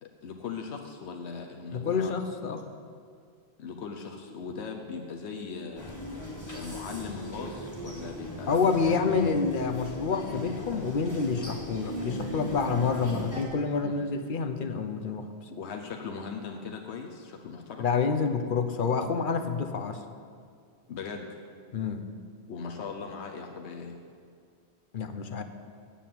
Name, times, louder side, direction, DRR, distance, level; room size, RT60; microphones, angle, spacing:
voice 1, 0.0-2.1 3.6-6.0 6.5-9.0 13.8-14.0 15.5-17.9 20.9-21.3 22.5-24.0, left 5 dB, 85° left, 2 dB, 1.1 m, -39 dB
voice 2, 1.7-2.7 8.5-15.3 17.8-20.0 21.7-22.1 24.9-25.4, left 5 dB, 55° left, 7 dB, 0.8 m, -28 dB
sound 1, 5.8-13.4, equal, 15° left, 1.7 m, -38 dB
8.6 x 8.5 x 7.5 m, 2.2 s
omnidirectional pair, 1.1 m